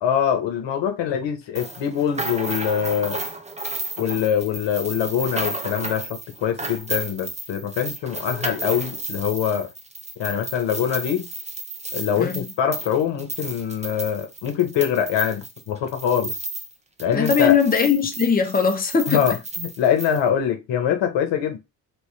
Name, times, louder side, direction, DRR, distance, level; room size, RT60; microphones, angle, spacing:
voice 1, 0.0-3.2 4.0-9.7 10.2-11.2 11.9-16.3 17.0-17.6 19.1-21.6, left 9 dB, 65° left, 1.1 m, -23 dB
sound 1, 1.5-16.7 17.0-20.2, right 2 dB, 15° right, 0.9 m, -33 dB
voice 2, 12.2-12.5 17.1-19.3, left 6 dB, 20° left, 0.9 m, -20 dB
3.3 x 2.9 x 3.2 m
hypercardioid pair, 55°, 46 cm